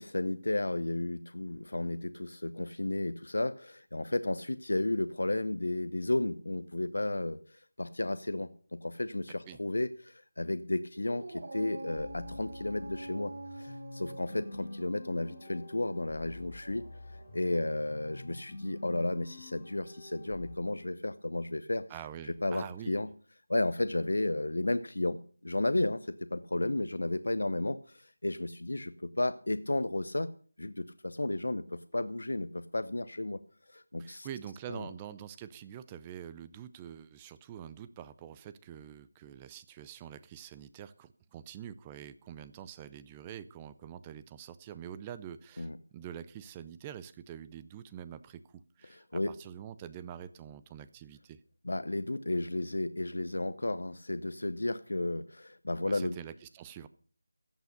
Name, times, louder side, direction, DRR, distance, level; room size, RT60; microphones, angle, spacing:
voice 1, 0.0-16.9 17.3-21.9 22.4-23.1 23.5-30.3 30.6-33.4 33.7-34.3 34.7-34.9 45.6-45.8 48.9-49.3 51.6-56.2, left 2 dB, 75° left, 13 dB, 0.7 m, -33 dB
Dog, 10.9-17.6, right 2 dB, 60° right, 1.5 m, -47 dB
sound 1, 12.0-20.5, left 2 dB, 30° left, 1.7 m, -48 dB
voice 2, 21.9-23.0 34.0-51.4 55.9-56.9, right 10 dB, 15° right, 14 dB, 0.5 m, -46 dB
14.5 x 8.3 x 6.5 m, 0.43 s
figure-of-eight pair, 165°, 0 cm